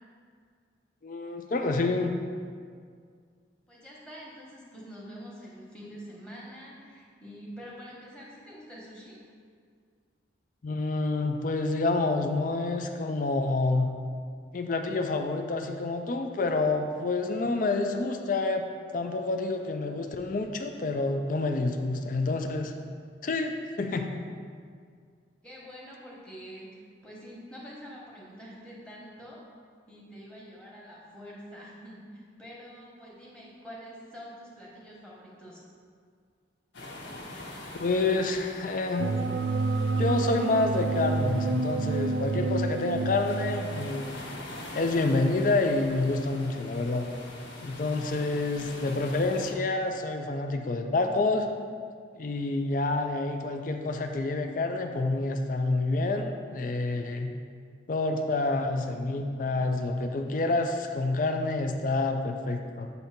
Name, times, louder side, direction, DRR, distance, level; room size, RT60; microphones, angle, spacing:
voice 1, 1.0-2.1 10.6-13.9 14.5-18.6 18.9-22.7 23.2-24.1 37.8-39.1 40.0-44.2 44.7-47.1 47.6-51.5 52.1-57.3 57.9-62.9, left 2 dB, 45° left, 5 dB, 0.4 m, -28 dB
voice 2, 3.7-9.2 25.4-29.4 29.9-35.6, equal, 5° left, -5 dB, 1.1 m, -46 dB
sound 1, 36.7-49.5, left 1 dB, 75° left, 1.1 m, -44 dB
sound 2, 39.0-44.1, right 3 dB, 85° right, 0.4 m, -29 dB
7.9 x 2.7 x 5.8 m, 2.1 s
head